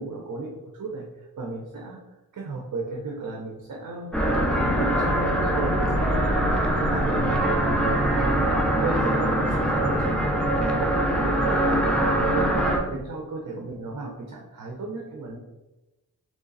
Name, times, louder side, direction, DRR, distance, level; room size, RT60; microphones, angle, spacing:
voice 1, 0.0-2.0 2.3-4.2 4.5-10.2 10.5-15.4, right 3 dB, 60° right, 0 dB, 0.7 m, -35 dB
sound 1, 4.1-12.8, right 1 dB, 5° left, 0.7 m, -23 dB
3.7 x 3.2 x 3.9 m, 1.0 s
wide cardioid pair, 90°, 34 cm